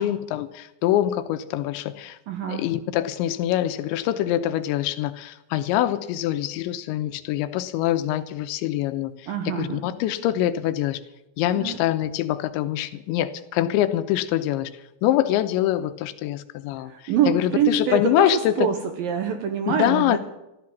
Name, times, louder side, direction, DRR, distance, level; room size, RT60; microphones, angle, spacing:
voice 1, 0.0-2.2 2.5-11.0 11.4-14.7 15.0-18.7 19.7-20.2, left 13 dB, 80° left, 11 dB, 3.1 m, -24 dB
voice 2, 2.3-2.8 9.3-9.8 11.6-11.8 16.8-20.2, right 8 dB, 70° right, 6 dB, 2.3 m, -25 dB
15.0 x 13.5 x 7.3 m, 0.91 s
omnidirectional pair, 5.3 m